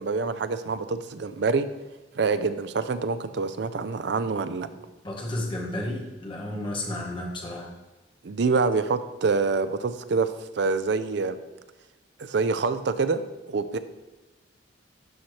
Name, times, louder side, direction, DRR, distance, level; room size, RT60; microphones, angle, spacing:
voice 1, 0.0-1.7 2.2-4.7 8.2-11.4 12.2-13.8, right 4 dB, 60° right, 11 dB, 0.4 m, -26 dB
voice 2, 5.0-7.7, left 1 dB, 25° left, -1 dB, 1.3 m, -32 dB
12.0 x 4.3 x 3.2 m, 1.1 s
head